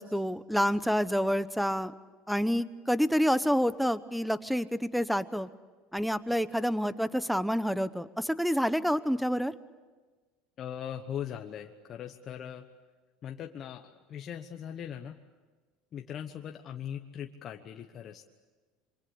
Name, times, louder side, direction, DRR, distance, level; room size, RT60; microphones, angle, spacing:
voice 1, 0.0-1.9 2.3-5.5 5.9-9.5, equal, ahead, 14 dB, 0.9 m, -28 dB
voice 2, 10.6-12.6 13.2-15.2 15.9-18.2, left 9 dB, 35° left, 4 dB, 1.2 m, -40 dB
26.5 x 24.0 x 8.6 m, 1.3 s
supercardioid pair, 140°, 0 cm